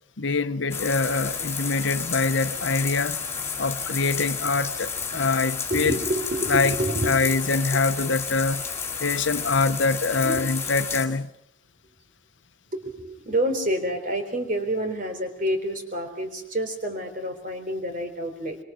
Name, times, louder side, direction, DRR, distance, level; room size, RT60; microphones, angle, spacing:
voice 1, 0.2-3.2 3.6-6.0 6.5-6.7 7.1-8.6 9.0-11.3, left 4 dB, 75° left, 0.9 m, -24 dB
sound 1, 0.7-11.1, left 6 dB, 15° left, 4.5 m, -31 dB
voice 2, 5.7-7.2 10.2-10.4 12.7-18.6, right 1 dB, 45° right, 3.9 m, -28 dB
26.0 x 24.0 x 6.3 m
head